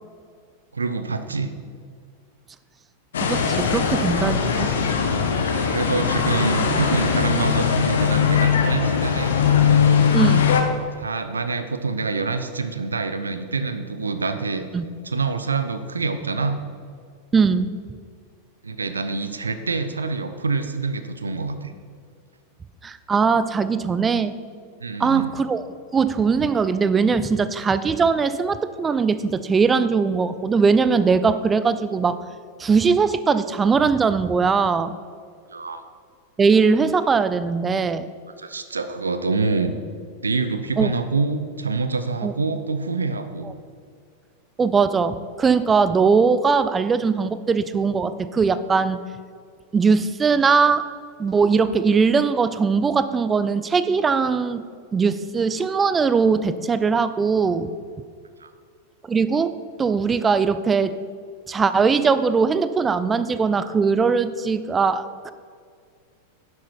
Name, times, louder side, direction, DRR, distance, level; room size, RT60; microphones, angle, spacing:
voice 1, 0.7-1.5 5.7-9.4 11.0-14.6 15.0-16.6 18.6-21.7 24.8-25.3 35.5-35.8 38.4-39.7 40.2-43.5 58.4-58.5, right 4 dB, 75° right, 9 dB, 0.7 m, -26 dB
sound 1, 3.1-10.6, left 6 dB, 65° left, 1.1 m, -20 dB
voice 2, 3.2-4.7 10.1-10.6 14.7-14.9 17.3-17.7 22.8-24.3 25.0-25.7 25.9-32.2 32.6-35.0 36.4-38.1 40.8-40.9 42.2-42.3 43.4-43.5 44.6-49.0 49.7-50.8 51.2-54.6 54.9-57.7 59.0-59.5 59.8-60.9 61.5-65.3, right 5 dB, 20° right, 13 dB, 0.5 m, -20 dB
10.5 x 8.0 x 4.6 m, 2.2 s
figure-of-eight pair, 90°, 0 cm